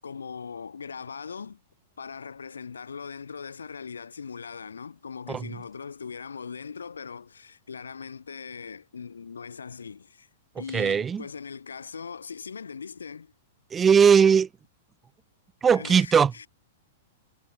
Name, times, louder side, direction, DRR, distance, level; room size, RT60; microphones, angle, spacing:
voice 1, 0.0-1.6 2.0-10.3 10.6-13.3 15.7-16.5, left 6 dB, 85° left, 3.6 m, -40 dB
voice 2, 10.7-11.2 13.7-14.5 15.6-16.4, right 7 dB, 20° right, 0.9 m, -19 dB
hypercardioid pair, 110°, 0 cm